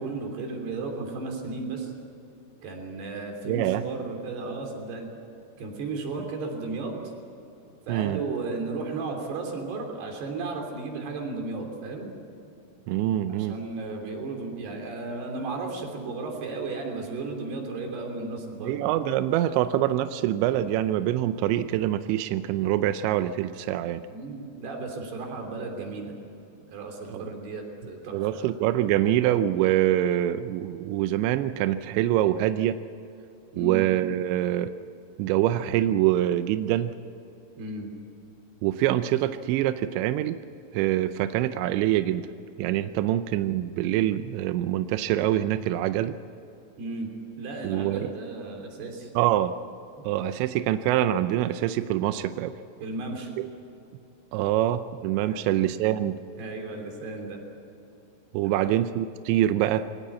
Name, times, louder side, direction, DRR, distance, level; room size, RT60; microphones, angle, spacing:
voice 1, 0.0-1.9 2.6-5.1 5.6-6.9 7.9-12.1 13.3-18.8 24.1-26.2 26.7-28.5 33.5-33.9 37.6-37.9 46.8-47.1 47.4-49.1 52.8-53.3 55.3-55.4 56.4-57.4 58.5-58.7, right 3 dB, 55° right, 3 dB, 4.9 m, -34 dB
voice 2, 3.5-3.8 7.9-8.2 12.9-13.6 18.6-24.0 27.1-27.2 28.1-32.8 33.6-34.7 35.2-36.9 38.6-40.4 40.7-42.3 42.6-46.2 47.6-48.1 49.2-49.5 50.0-52.5 53.4-53.5 54.3-56.2 58.3-59.8, right 13 dB, 85° right, 11 dB, 2.6 m, -25 dB
23.0 x 18.5 x 8.4 m, 2.8 s
omnidirectional pair, 5.8 m